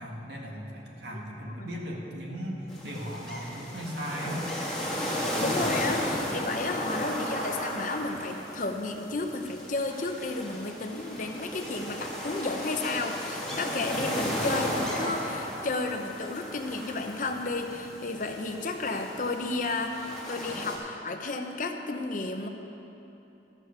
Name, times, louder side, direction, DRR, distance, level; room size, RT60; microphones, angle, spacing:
voice 1, 0.0-4.5, equal, 70° right, -2 dB, 1.9 m, -37 dB
voice 2, 1.1-1.7 5.4-22.5, left 3 dB, 45° left, 5 dB, 0.8 m, -32 dB
sound 1, 2.7-20.8, equal, 5° left, 1.8 m, -34 dB
14.0 x 6.4 x 6.6 m, 3.0 s
head